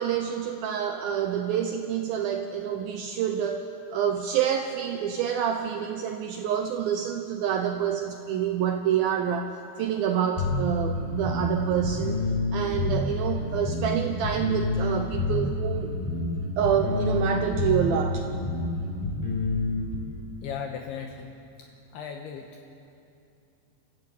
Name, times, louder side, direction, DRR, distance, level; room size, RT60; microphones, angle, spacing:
voice 1, 0.0-9.5 9.8-12.2 12.5-15.9 16.6-18.3, right 9 dB, 80° right, 5 dB, 2.2 m, -27 dB
sound 1, 10.4-20.0, left 3 dB, 5° left, 5.5 m, -28 dB
voice 2, 20.4-21.3 21.6-22.6, left 7 dB, 75° left, 3 dB, 2.8 m, -37 dB
29.5 x 14.0 x 8.2 m, 2.6 s
omnidirectional pair, 5.2 m